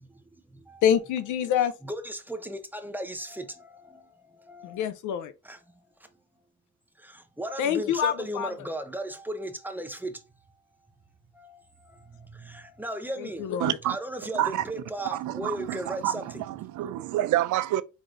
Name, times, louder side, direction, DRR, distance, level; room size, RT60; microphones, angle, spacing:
voice 1, 0.8-1.7 4.6-5.3 7.6-8.5 13.2-13.8, left 9 dB, 75° left, 0.5 m, -26 dB
voice 2, 1.8-3.5 4.5-4.9 5.5-5.6 7.4-10.1 12.5-13.4 13.9-16.4, right 1 dB, 5° right, 0.6 m, -35 dB
voice 3, 13.6-14.0 14.4-14.6 15.1-17.8, right 14 dB, 75° right, 0.5 m, -28 dB
4.5 x 4.0 x 2.5 m
cardioid pair, 90°, 30 cm